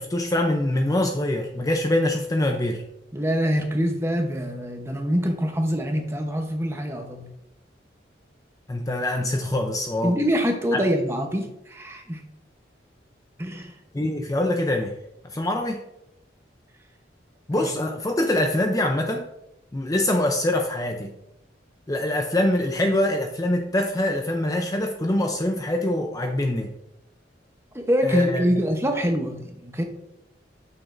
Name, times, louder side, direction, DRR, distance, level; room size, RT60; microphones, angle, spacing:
voice 1, 0.0-2.8 8.7-10.2 10.7-10.8 13.9-15.0 15.2-15.8 17.5-19.3 19.7-21.1 21.9-26.7 28.0-28.4, left 1 dB, 20° left, 4 dB, 0.5 m, -24 dB
voice 2, 3.1-7.3 10.0-12.2 13.4-14.1 17.6-17.7 27.7-29.8, equal, 15° right, 3 dB, 0.8 m, -25 dB
8.9 x 6.2 x 2.5 m, 0.83 s
head